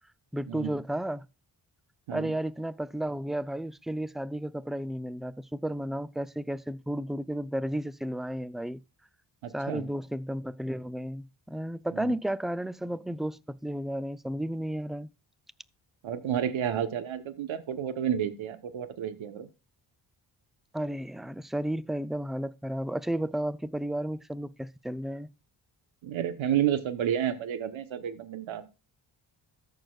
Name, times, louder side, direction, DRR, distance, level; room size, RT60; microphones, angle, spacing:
voice 1, 0.3-1.2 2.1-8.8 9.5-15.1 20.7-25.3, right 1 dB, ahead, 0.4 m, -33 dB
voice 2, 9.4-9.9 12.0-12.2 16.0-19.5 26.0-28.6, right 9 dB, 80° right, 1.1 m, -30 dB
14.0 x 6.6 x 2.4 m
cardioid pair, 65°, 47 cm